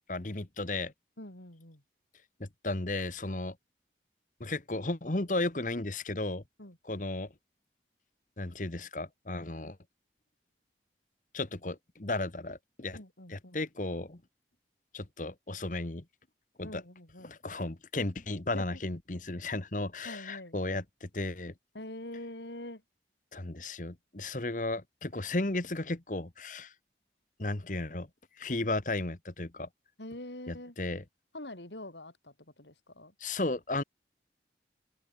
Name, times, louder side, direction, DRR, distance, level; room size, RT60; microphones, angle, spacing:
voice 1, 0.1-0.9 2.4-3.6 4.4-6.4 6.8-7.3 8.4-9.8 11.3-13.0 13.3-14.2 14.9-16.0 16.6-16.8 17.2-21.5 23.3-26.7 27.4-28.1 28.4-29.7 30.5-31.0 33.2-33.8, left 2 dB, 45° left, 1.4 m, -34 dB
voice 2, 1.2-1.8 6.6-6.8 12.9-13.6 16.6-17.3 18.5-18.8 20.0-20.6 21.7-22.8 30.0-30.8 31.3-33.1, left 1 dB, 85° left, 5.4 m, -44 dB
head